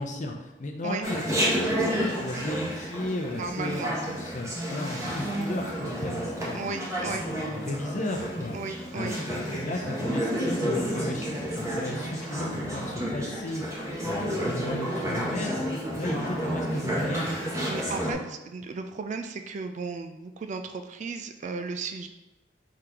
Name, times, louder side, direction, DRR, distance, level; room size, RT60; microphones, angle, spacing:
voice 1, 0.0-6.7 7.1-8.6 8.9-15.6 15.9-17.4, left 1 dB, 40° left, 2 dB, 0.6 m, -35 dB
Chatter, 1.0-18.1, equal, 15° right, 0.9 m, -30 dB
voice 2, 3.4-3.9 6.5-7.3 8.5-9.2 17.7-22.1, right 4 dB, 40° right, 7 dB, 0.3 m, -35 dB
4.8 x 3.8 x 2.9 m, 1.0 s
head